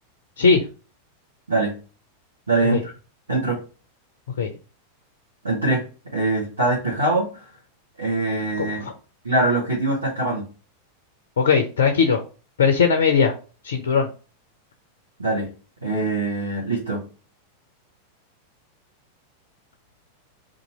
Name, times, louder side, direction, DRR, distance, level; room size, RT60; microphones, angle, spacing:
voice 1, 2.5-2.9 3.3-3.6 5.4-5.9 6.1-7.5 8.0-8.9 9.2-10.4 15.2-15.5 15.8-17.0, right 2 dB, 75° right, -4 dB, 1.0 m, -23 dB
voice 2, 8.6-8.9 11.4-12.2 12.6-13.3 13.6-14.1, left 5 dB, 65° left, 6 dB, 0.5 m, -19 dB
2.7 x 2.5 x 4.1 m, 0.36 s
figure-of-eight pair, 90°, 0 cm